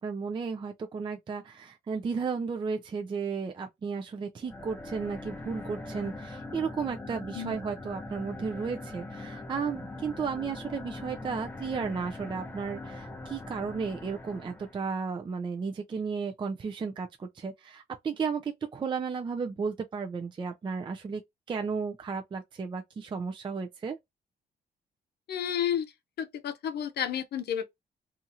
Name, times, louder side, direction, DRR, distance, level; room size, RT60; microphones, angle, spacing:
voice 1, 0.0-21.2 21.5-24.0, right 5 dB, 30° right, 0.4 m, -34 dB
sound 1, 4.4-14.9, left 2 dB, 15° left, 0.7 m, -42 dB
voice 2, 25.3-25.9 26.2-27.7, left 9 dB, 65° left, 0.6 m, -31 dB
2.7 x 2.4 x 2.7 m
cardioid pair, 95°, 18 cm